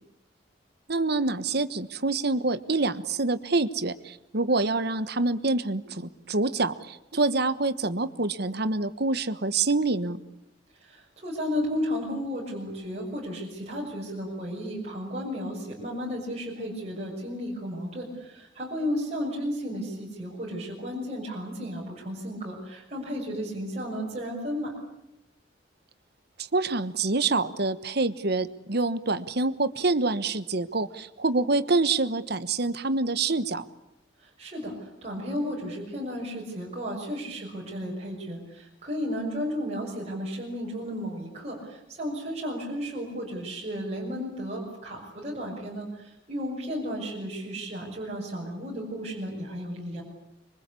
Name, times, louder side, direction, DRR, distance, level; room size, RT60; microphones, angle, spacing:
voice 1, 0.9-10.2 26.5-33.6, right 3 dB, 60° right, 13 dB, 1.3 m, -26 dB
voice 2, 10.8-24.8 34.2-50.0, equal, 35° right, -3 dB, 6.3 m, -33 dB
26.5 x 24.0 x 8.5 m, 0.86 s
head